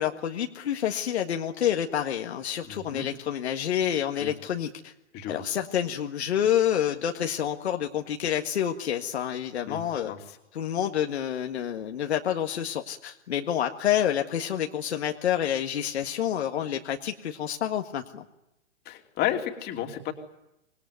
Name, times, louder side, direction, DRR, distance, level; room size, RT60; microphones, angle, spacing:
voice 1, 0.0-4.9 5.3-10.1 10.5-18.3, left 10 dB, 60° left, 3 dB, 1.8 m, -28 dB
voice 2, 2.6-3.1 4.2-4.3 5.1-5.4 9.7-9.8 10.1-10.2 18.9-20.1, left 11 dB, 25° left, 5 dB, 2.9 m, -32 dB
25.5 x 20.5 x 9.5 m, 0.88 s
hypercardioid pair, 125°, 37 cm